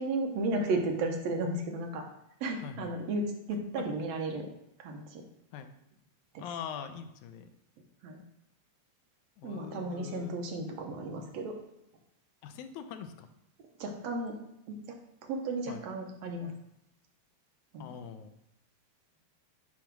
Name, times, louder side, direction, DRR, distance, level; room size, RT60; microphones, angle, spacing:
voice 1, 0.0-2.1 2.4-3.2 3.5-4.5 4.8-5.2 6.3-6.5 8.0-8.2 9.4-11.6 13.8-14.3 14.7-15.0 15.2-16.5 17.7-18.0, right 2 dB, 70° right, 3 dB, 1.9 m, -34 dB
voice 2, 2.6-3.0 3.8-3.9 5.5-5.7 6.4-7.5 9.4-10.4 12.4-13.3 15.7-15.8 17.8-18.3, left 8 dB, 85° left, 8 dB, 2.0 m, -42 dB
8.5 x 3.1 x 5.9 m, 0.82 s
omnidirectional pair, 3.3 m